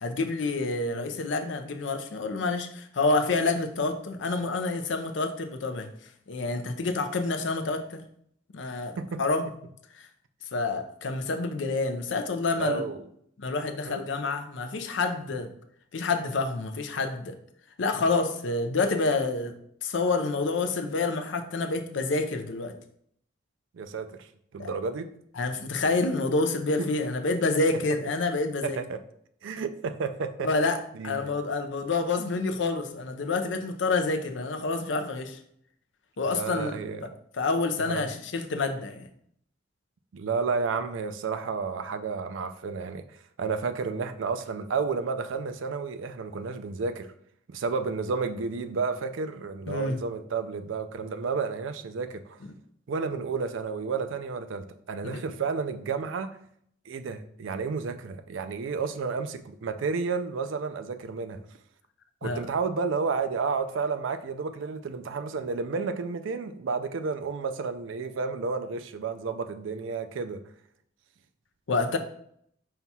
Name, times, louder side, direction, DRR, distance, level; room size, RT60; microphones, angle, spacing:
voice 1, 0.0-5.9 6.3-8.0 8.5-9.5 10.0-10.1 10.5-12.8 13.4-15.5 15.9-17.4 17.8-22.8 24.6-24.7 25.4-28.8 30.4-35.4 36.2-36.7 37.0-37.1 37.4-39.1 49.7-50.0 55.0-55.2 62.2-62.5 71.7-72.0, left 3 dB, 75° left, 0.5 m, -28 dB
voice 2, 12.6-13.1 13.8-14.0 23.7-24.3 24.5-25.1 26.8-26.9 28.6-29.0 29.4-30.5 30.9-31.3 36.3-37.0 37.9-38.1 40.1-43.0 43.4-47.1 47.5-52.4 52.9-56.3 56.9-61.4 62.2-70.4, right 4 dB, 80° right, 0.4 m, -31 dB
5.6 x 2.3 x 4.1 m
head